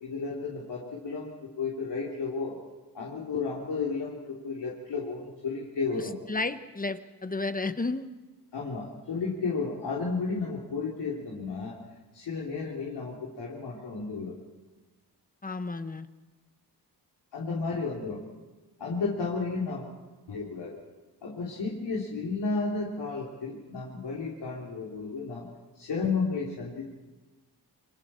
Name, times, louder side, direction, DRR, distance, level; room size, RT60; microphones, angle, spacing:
voice 1, 0.0-2.6 2.9-6.2 8.5-11.8 12.1-14.4 17.3-18.2 18.8-19.9 20.3-20.8 21.2-25.5 25.8-26.9, left 4 dB, 75° left, -4 dB, 3.4 m, -33 dB
voice 2, 6.3-8.1 15.4-16.1, left 3 dB, 20° left, 11 dB, 1.0 m, -32 dB
28.5 x 23.0 x 4.4 m, 1.2 s
cardioid pair, 90°, 42 cm